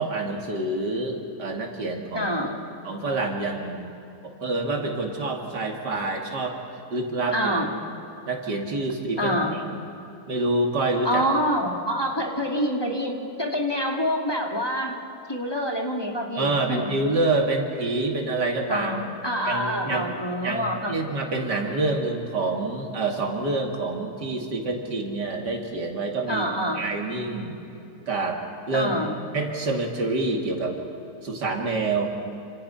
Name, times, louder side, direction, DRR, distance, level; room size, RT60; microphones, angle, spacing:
voice 1, 0.0-2.3 2.8-3.9 4.2-6.6 6.9-7.3 8.3-9.4 9.6-9.8 10.3-11.2 16.4-18.9 19.5-20.1 20.4-26.4 26.7-27.5 28.1-28.4 28.7-28.9 29.3-30.8 31.2-32.1, right 2 dB, 80° right, 2 dB, 3.1 m, -27 dB
voice 2, 2.1-2.6 7.3-7.7 9.2-9.6 11.0-14.9 15.3-16.9 18.7-21.0 26.3-26.8 28.7-29.2, equal, 15° left, 0 dB, 2.2 m, -26 dB
28.5 x 26.5 x 5.7 m, 2.9 s
omnidirectional pair, 1.8 m